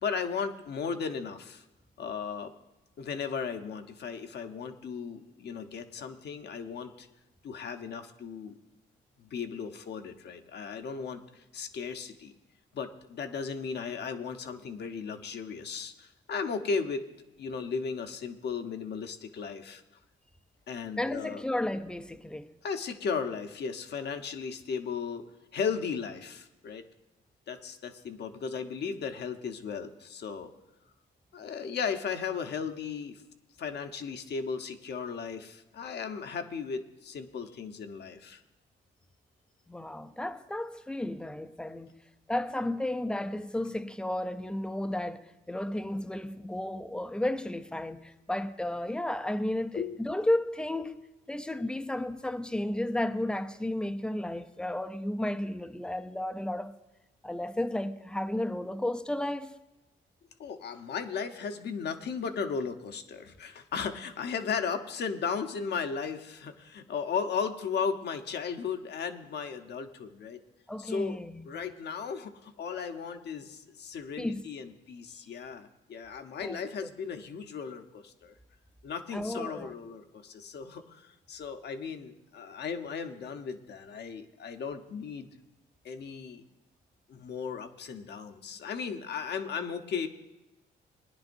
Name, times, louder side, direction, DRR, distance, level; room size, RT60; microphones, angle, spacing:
voice 1, 0.0-1.6 2.0-2.5 3.0-7.1 7.4-8.6 9.2-12.3 12.7-17.0 17.4-19.8 20.7-21.4 22.6-25.3 25.5-26.9 27.5-30.5 31.3-33.2 33.6-38.4 49.7-50.0 60.4-70.4 70.8-71.2 71.4-78.3 78.8-85.3 85.8-86.4 87.1-90.1, left 6 dB, 60° left, 1.0 m, -36 dB
voice 2, 21.0-22.5 39.7-41.9 42.3-51.0 51.3-56.7 57.2-59.6 70.7-71.5 74.2-74.4 76.4-76.6 79.1-79.7, left 1 dB, 5° left, 0.6 m, -33 dB
20.0 x 10.0 x 2.6 m
cardioid pair, 90°, 20 cm